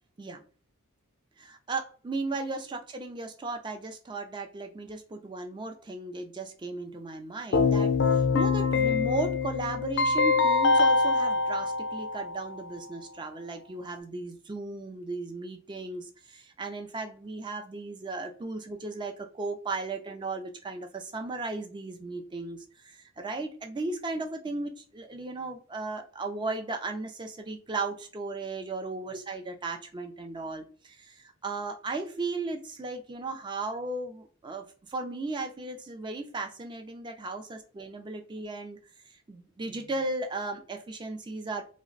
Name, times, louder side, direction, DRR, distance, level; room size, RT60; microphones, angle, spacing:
voice 1, 1.4-38.8 39.1-41.6, right 3 dB, 20° right, 4 dB, 0.3 m, -36 dB
Keyboard (musical), 7.5-12.5, left 4 dB, 55° left, 0.3 m, -24 dB
2.4 x 2.1 x 3.8 m, 0.41 s
head